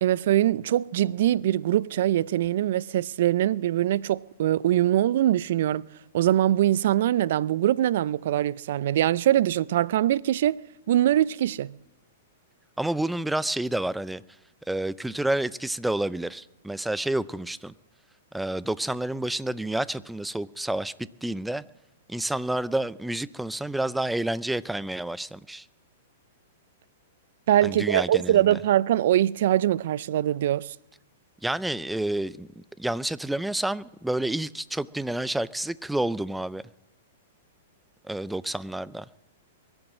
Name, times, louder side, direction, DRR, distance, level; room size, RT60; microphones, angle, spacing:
voice 1, 0.0-5.8 6.1-10.6 10.9-11.8 27.5-30.7, right 12 dB, 60° right, 0.4 m, -23 dB
voice 2, 12.8-14.2 14.7-17.7 18.3-20.9 21.2-21.6 22.1-25.7 27.6-28.6 31.4-36.7 38.0-39.1, right 1 dB, 5° right, 0.5 m, -29 dB
22.5 x 7.9 x 7.4 m
hypercardioid pair, 115°, 0 cm